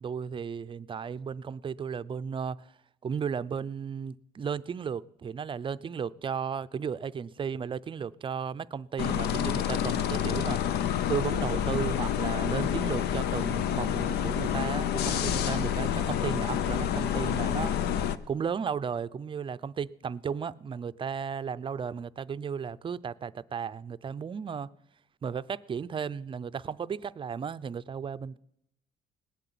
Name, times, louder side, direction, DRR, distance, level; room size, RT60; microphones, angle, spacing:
voice 1, 0.0-2.7 3.0-10.6 11.1-17.7 18.3-24.7 25.2-28.4, right 7 dB, 30° right, 0.5 m, -34 dB
sound 1, 9.0-18.2, left 9 dB, 75° left, 0.8 m, -28 dB
19.0 x 7.9 x 9.3 m
cardioid pair, 110°, 17 cm